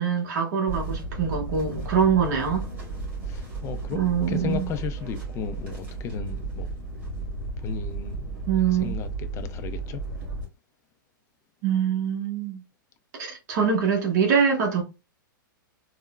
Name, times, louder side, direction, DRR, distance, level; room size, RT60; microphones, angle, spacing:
voice 1, 0.0-2.6 3.9-4.7 8.5-9.0 11.6-12.6 13.2-14.8, right 7 dB, 50° right, 0.9 m, -24 dB
sound 1, 0.7-10.4, right 3 dB, 10° right, 1.5 m, -34 dB
voice 2, 3.2-6.8 7.6-8.4 8.7-10.0, left 7 dB, 25° left, 0.4 m, -35 dB
3.5 x 2.1 x 2.2 m
hypercardioid pair, 120°, 11 cm